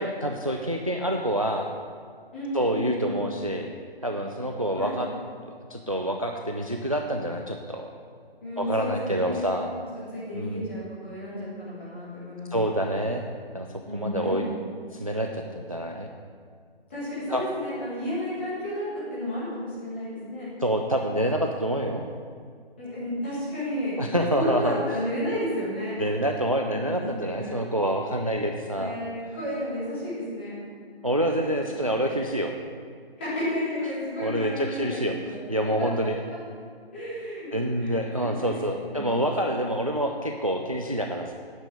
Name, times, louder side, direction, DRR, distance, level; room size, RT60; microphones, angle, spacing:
voice 1, 0.0-1.7 2.5-3.7 4.0-5.1 5.5-7.9 8.6-9.7 10.3-10.7 12.5-13.2 13.5-13.7 13.9-14.4 14.9-16.1 17.3-17.4 20.6-22.0 24.0-24.8 26.0-29.0 31.0-32.5 34.2-35.2 35.5-36.2 37.5-41.3, right 1 dB, 35° right, 3 dB, 0.4 m, -27 dB
voice 2, 2.3-3.2 4.7-4.9 8.4-9.6 10.1-12.7 13.9-14.4 16.9-20.5 22.8-24.0 24.3-26.0 26.7-27.6 28.7-30.6 31.9-32.0 33.2-35.4 35.8-35.9 36.9-37.5 37.8-37.9 38.2-39.1, left 1 dB, 10° left, -10 dB, 1.9 m, -32 dB
9.0 x 5.5 x 8.1 m, 2.1 s
hypercardioid pair, 175°, 31 cm